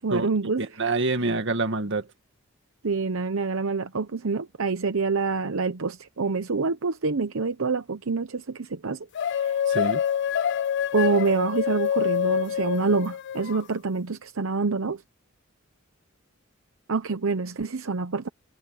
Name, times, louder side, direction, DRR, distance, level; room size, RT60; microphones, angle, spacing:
voice 1, 0.0-0.8 2.8-9.0 9.3-9.6 10.9-15.0 16.9-18.3, right 4 dB, 75° right, 0.8 m, -26 dB
voice 2, 0.6-2.1 9.7-10.0, right 3 dB, 60° right, 1.9 m, -26 dB
sound 1, 9.1-13.6, left 9 dB, 60° left, 0.4 m, -26 dB
head